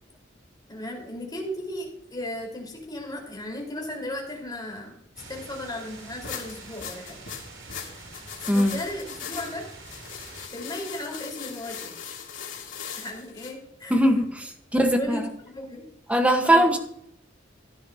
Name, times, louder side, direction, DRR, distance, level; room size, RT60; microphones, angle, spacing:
voice 1, 0.7-5.0 5.3-7.2 8.5-9.7 10.5-12.2 13.0-14.0 14.8-15.9 16.4-16.7, left 1 dB, 20° left, -1 dB, 4.4 m, -36 dB
sound 1, 5.2-10.5, right 3 dB, 75° right, 3.5 m, -45 dB
sound 2, 6.2-13.5, left 7 dB, 85° left, 2.7 m, -39 dB
voice 2, 13.9-15.3 16.1-16.8, equal, 5° right, 5 dB, 1.3 m, -21 dB
16.0 x 10.5 x 2.9 m, 0.72 s
head